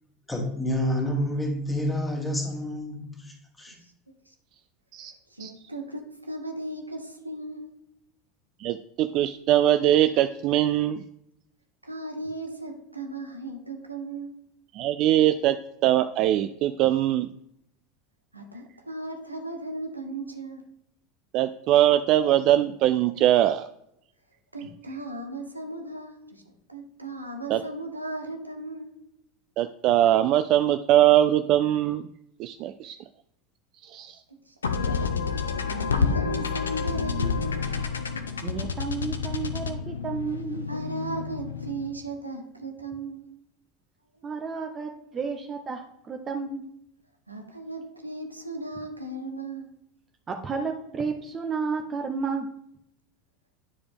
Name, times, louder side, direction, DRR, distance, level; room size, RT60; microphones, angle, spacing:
voice 1, 0.3-3.8, left 1 dB, 10° left, 1 dB, 1.9 m, -29 dB
voice 2, 3.7-4.3 5.3-7.9 11.8-14.5 18.3-20.7 24.5-29.1 34.3-34.5 35.7-38.0 40.7-43.4 47.3-49.7, right 2 dB, 90° right, 3 dB, 0.9 m, -36 dB
voice 3, 8.6-11.0 14.7-15.6 15.8-17.3 21.3-23.7 27.5-27.6 29.6-32.1 32.4-33.0 33.8-34.2, right 12 dB, 45° right, 10 dB, 0.3 m, -22 dB
sound 1, 34.6-42.0, left 5 dB, 80° left, 0.6 m, -29 dB
voice 4, 38.4-40.7 44.2-46.6 50.3-52.5, right 5 dB, 30° right, 4 dB, 0.7 m, -32 dB
9.1 x 4.9 x 3.4 m, 0.79 s
figure-of-eight pair, 80°, 0 cm